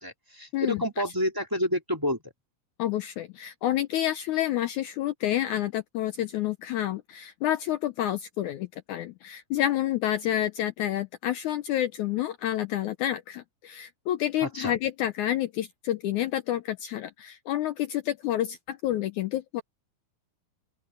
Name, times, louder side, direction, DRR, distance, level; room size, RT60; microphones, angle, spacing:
voice 1, 0.0-2.2 14.4-14.7, left 1 dB, 5° right, 2.2 m, -29 dB
voice 2, 2.8-19.6, left 12 dB, 80° left, 1.8 m, -29 dB
open air
omnidirectional pair, 4.2 m